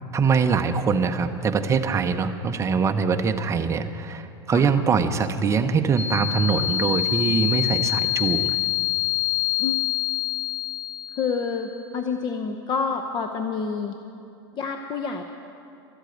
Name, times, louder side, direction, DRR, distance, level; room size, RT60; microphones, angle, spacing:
voice 1, 0.1-8.6, right 5 dB, 20° right, 8 dB, 0.7 m, -23 dB
sound 1, 6.0-11.6, left 14 dB, 80° left, 1.6 m, -26 dB
voice 2, 11.1-14.0 14.5-15.2, left 5 dB, 35° left, 5 dB, 0.8 m, -28 dB
13.0 x 8.1 x 9.2 m, 2.7 s
hypercardioid pair, 120°, 14 cm